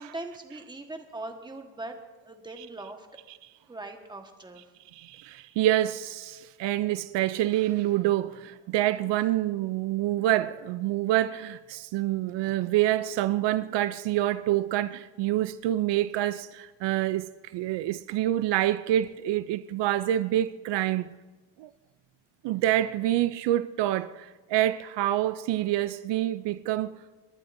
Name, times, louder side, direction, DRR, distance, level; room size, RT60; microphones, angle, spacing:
voice 1, 0.0-3.1 3.7-4.7, right 2 dB, 10° right, 1.4 m, -41 dB
voice 2, 4.9-21.1 21.6-21.7 22.4-26.9, right 13 dB, 80° right, 0.6 m, -27 dB
28.5 x 11.5 x 2.6 m
cardioid pair, 125°, 42 cm